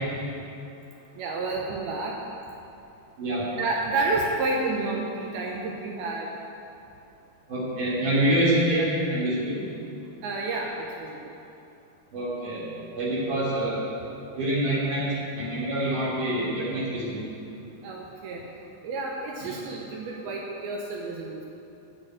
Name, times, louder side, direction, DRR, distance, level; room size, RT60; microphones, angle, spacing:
voice 1, 1.2-2.2 3.6-6.4 10.2-11.3 17.8-18.4 18.8-21.5, right 3 dB, 75° right, -1 dB, 2.7 m, -30 dB
voice 2, 7.5-9.7 12.1-13.9 14.4-17.3 19.4-19.6, right 1 dB, 55° right, -8 dB, 4.6 m, -26 dB
8.9 x 8.2 x 8.9 m, 2.8 s
omnidirectional pair, 4.6 m